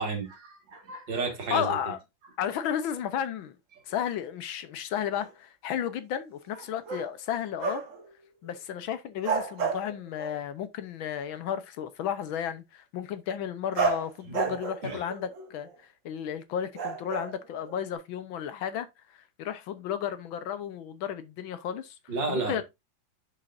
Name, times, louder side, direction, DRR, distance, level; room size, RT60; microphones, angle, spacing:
voice 1, 0.0-1.8 14.3-15.0 22.1-22.6, right 3 dB, 65° right, 2.6 m, -33 dB
voice 2, 1.5-2.0 2.4-3.6 3.9-7.8 8.4-15.7 16.0-22.6, left 9 dB, 75° left, 1.6 m, -33 dB
sound 1, 5.2-5.3 6.5-7.2 7.6-8.1 8.4-8.6 9.2-10.4 13.7-15.8 16.7-17.9, right 6 dB, 45° right, 1.5 m, -32 dB
7.3 x 6.6 x 2.5 m
omnidirectional pair, 2.2 m